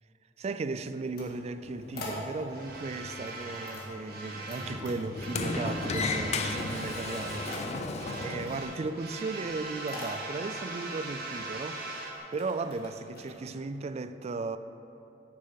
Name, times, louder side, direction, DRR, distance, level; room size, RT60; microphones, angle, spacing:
voice 1, 0.4-7.9 8.1-11.8 12.3-14.6, right 3 dB, 35° right, 0.3 m, -36 dB
sound 1, 0.9-2.7 3.1-4.6 4.8-5.7 6.0-6.6 6.9-13.6, left 2 dB, 60° left, 1.9 m, -47 dB
Sliding door, 1.6-8.6, left 3 dB, 40° left, 0.5 m, -36 dB
sound 2, 2.5-4.8 5.1-7.7 7.9-12.2, right 2 dB, 60° right, 1.4 m, -40 dB
9.4 x 6.7 x 5.7 m
head